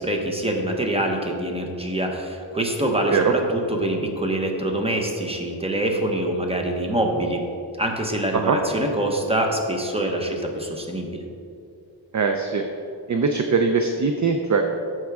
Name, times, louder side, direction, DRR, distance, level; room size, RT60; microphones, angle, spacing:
voice 1, 0.0-7.4 7.8-11.2, right 1 dB, 10° right, 1 dB, 1.0 m, -25 dB
voice 2, 12.1-12.6 13.1-14.6, right 5 dB, 40° right, 4 dB, 0.5 m, -21 dB
14.0 x 4.6 x 3.5 m, 2.5 s
wide cardioid pair, 100°, 48 cm